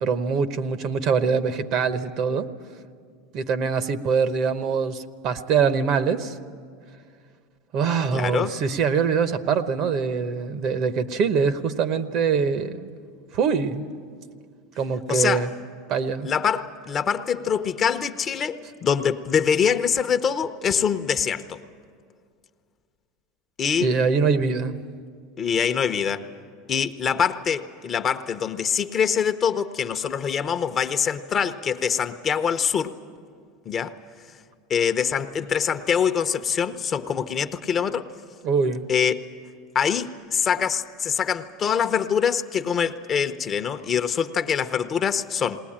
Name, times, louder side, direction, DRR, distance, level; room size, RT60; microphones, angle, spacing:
voice 1, 0.0-2.5 3.3-6.4 7.7-12.9 13.3-13.9 14.8-15.5 15.9-16.3 23.8-24.7 38.4-38.9, right 5 dB, 50° right, 12 dB, 1.0 m, -23 dB
voice 2, 8.1-8.5 15.1-15.5 16.2-21.6 23.6-23.9 25.4-26.2 26.7-32.9 33.7-33.9 34.7-38.1 38.9-39.3 39.7-45.6, left 7 dB, 30° left, 9 dB, 0.8 m, -24 dB
19.5 x 19.5 x 8.8 m, 2.1 s
supercardioid pair, 130°, 0 cm